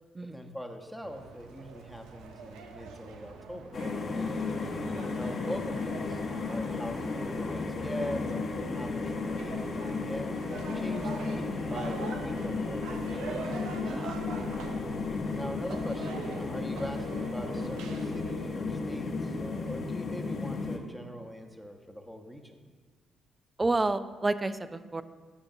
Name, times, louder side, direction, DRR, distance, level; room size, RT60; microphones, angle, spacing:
voice 1, 0.3-3.7 4.9-10.3 10.7-13.4 14.8-22.6, equal, ahead, 4 dB, 1.0 m, -42 dB
sound 1, 1.0-18.6, right 4 dB, 75° right, 0.6 m, -44 dB
sound 2, 3.7-20.8, left 4 dB, 50° left, 0.9 m, -34 dB
voice 2, 4.1-4.5 13.8-14.3 23.6-25.0, right 2 dB, 25° right, 13 dB, 0.5 m, -30 dB
11.5 x 6.6 x 2.7 m, 1.5 s
hypercardioid pair, 45°, 0 cm